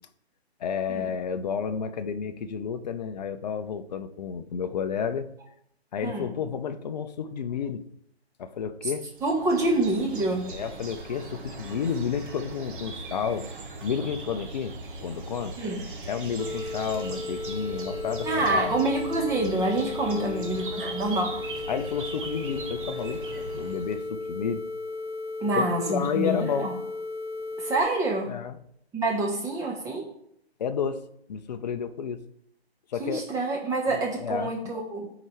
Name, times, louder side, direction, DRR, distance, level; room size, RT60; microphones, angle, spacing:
voice 1, 0.6-5.3 5.9-7.8 8.4-9.1 10.5-13.5 13.8-14.7 15.0-15.6 16.1-18.8 20.1-20.6 21.7-24.6 25.5-26.7 28.3-28.6 30.6-31.0 31.3-32.2 32.9-33.2 34.2-34.5, left 7 dB, 40° left, 10 dB, 0.6 m, -31 dB
sound 1, 9.1-24.0, right 3 dB, 50° right, 1.5 m, -39 dB
voice 2, 9.2-10.5 15.6-15.8 18.2-21.4 25.4-26.7 27.6-28.3 28.9-30.1 33.0-35.1, right 2 dB, 10° right, 0 dB, 1.0 m, -27 dB
sound 2, 16.4-27.8, left 3 dB, 75° left, 0.8 m, -35 dB
13.0 x 4.8 x 3.1 m, 0.72 s
figure-of-eight pair, 135°, 32 cm